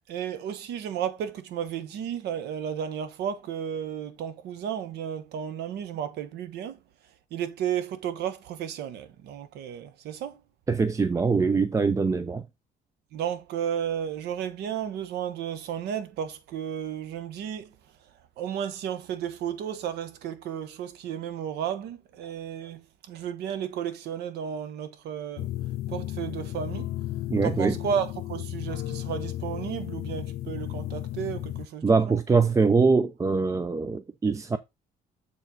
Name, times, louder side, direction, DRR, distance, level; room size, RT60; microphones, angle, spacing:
voice 1, 0.1-6.8 7.3-10.4 13.1-17.7 18.4-25.5 25.9-26.9 27.4-32.2, right 9 dB, 75° right, 1.1 m, -33 dB
voice 2, 10.7-12.4 27.3-27.8 31.8-34.6, right 4 dB, 20° right, 0.5 m, -23 dB
sound 1, 25.4-31.7, left 14 dB, 60° left, 0.4 m, -34 dB
7.0 x 4.6 x 3.9 m
cardioid pair, 110°, 17 cm